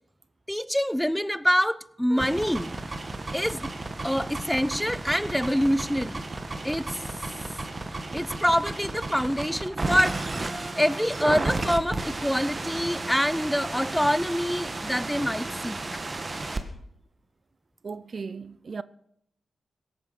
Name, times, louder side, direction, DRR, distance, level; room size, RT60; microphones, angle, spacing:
voice 1, 0.5-2.7 3.3-3.7 4.0-6.2 6.6-7.0 8.1-10.2 10.8-15.8, equal, 5° left, 0.6 m, -25 dB
sound 1, 2.1-16.6, right 2 dB, 35° right, 1.7 m, -33 dB
voice 2, 17.8-18.8, right 5 dB, 55° right, 0.5 m, -36 dB
17.0 x 9.3 x 6.3 m
cardioid pair, 55°, 0 cm